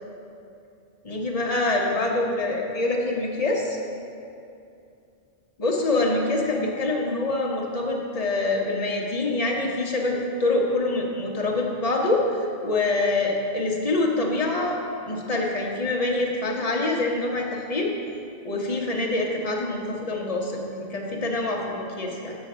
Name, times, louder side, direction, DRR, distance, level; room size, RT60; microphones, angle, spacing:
voice 1, 1.0-3.8 5.6-17.9 18.4-22.4, left 2 dB, 40° left, -1 dB, 1.0 m, -25 dB
7.0 x 5.2 x 6.1 m, 2.6 s
omnidirectional pair, 1.1 m